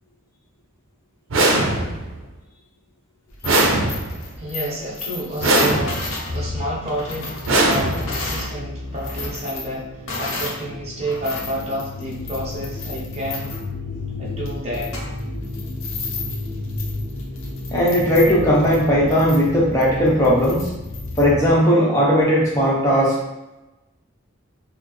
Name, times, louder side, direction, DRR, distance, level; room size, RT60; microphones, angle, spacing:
sound 1, 1.3-2.2 3.4-4.4 5.4-6.2 7.4-8.4, right 2 dB, 75° right, 0.6 m, -20 dB
sound 2, 3.3-8.5 8.9-10.6 11.0-21.2, left 3 dB, 85° left, 0.8 m, -34 dB
voice 1, 4.4-13.5 14.2-15.0, right 1 dB, 30° right, -5 dB, 1.0 m, -30 dB
sound 3, 6.3-21.5, left 2 dB, 50° left, 0.5 m, -32 dB
voice 2, 17.7-20.7 21.2-23.1, equal, 15° left, -5 dB, 0.8 m, -17 dB
4.1 x 2.0 x 3.2 m, 0.98 s
head